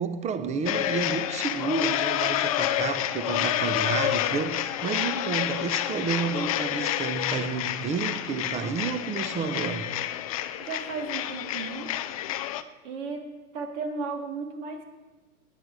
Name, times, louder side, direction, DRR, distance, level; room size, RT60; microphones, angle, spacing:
voice 1, 0.0-9.9, right 5 dB, 15° right, 11 dB, 0.9 m, -30 dB
sound 1, 0.7-12.6, left 12 dB, 25° left, 0.4 m, -29 dB
voice 2, 10.6-11.9 12.8-13.3 13.5-14.8, right 4 dB, 50° right, 3 dB, 2.8 m, -34 dB
19.0 x 10.0 x 4.9 m, 1.2 s
figure-of-eight pair, 115°, 45 cm